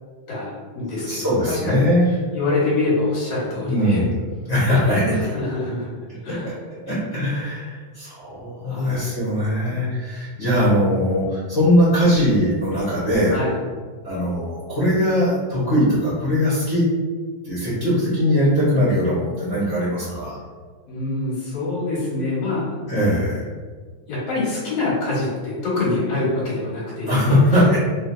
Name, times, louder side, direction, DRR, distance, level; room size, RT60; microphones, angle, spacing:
voice 1, 0.3-1.9 2.3-4.0 5.1-5.9 6.2-6.5 8.6-9.2 13.3-13.6 20.9-22.7 24.1-27.4, left 2 dB, 55° left, -8 dB, 2.5 m, -25 dB
voice 2, 1.0-2.1 3.6-4.2 4.5-5.2 6.4-6.5 6.9-13.4 14.0-16.8 17.4-20.4 22.9-23.5 27.1-27.8, equal, 85° left, -11 dB, 0.5 m, -20 dB
5.2 x 2.3 x 2.7 m, 1.5 s
omnidirectional pair, 3.5 m